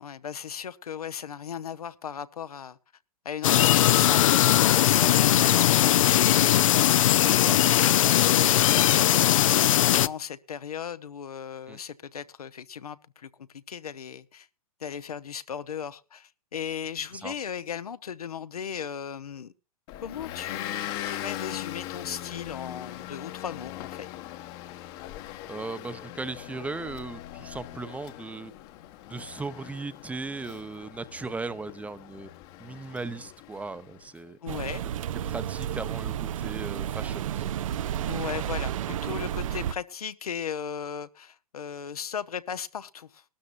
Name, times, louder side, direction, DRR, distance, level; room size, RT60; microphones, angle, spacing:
voice 1, 0.0-2.8 3.2-7.3 7.8-14.5 14.8-19.5 20.0-24.1 34.4-34.8 38.1-43.2, left 8 dB, 80° left, 0.9 m, -37 dB
sound 1, 3.4-10.1, left 13 dB, 60° left, 0.6 m, -20 dB
voice 2, 5.3-5.7 7.2-8.0 11.7-11.8 17.2-17.3 25.5-28.5 29.1-32.3 32.6-34.4 35.2-37.5 38.2-38.5, right 3 dB, 5° right, 0.8 m, -37 dB
Motor vehicle (road) / Engine, 19.9-34.1, left 13 dB, 40° left, 1.1 m, -40 dB
sound 2, 34.5-39.7, right 10 dB, 60° right, 0.6 m, -31 dB
20.0 x 13.0 x 2.6 m
hypercardioid pair, 115°, 19 cm